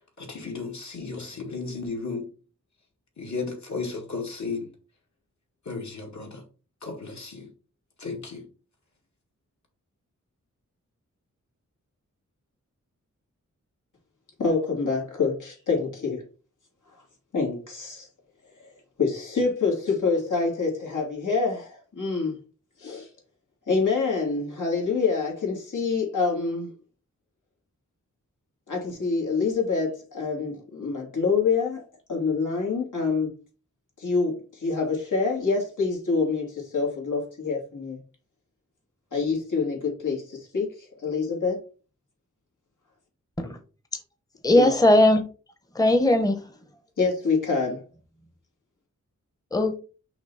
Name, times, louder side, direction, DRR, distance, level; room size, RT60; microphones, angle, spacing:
voice 1, 0.2-2.2 3.2-4.7 5.7-6.4 6.8-7.5 8.0-8.5, left 4 dB, 65° left, 2.3 m, -34 dB
voice 2, 14.4-16.3 17.3-18.1 19.0-22.4 22.8-23.1 23.7-26.7 28.7-31.8 32.1-33.3 34.0-38.0 39.1-41.6 44.5-44.7 47.0-47.8, left 4 dB, 80° left, 2.5 m, -26 dB
voice 3, 44.4-45.2 45.7-46.4 49.5-49.8, left 1 dB, 10° left, 0.9 m, -19 dB
5.9 x 3.0 x 5.6 m
wide cardioid pair, 95°, 31 cm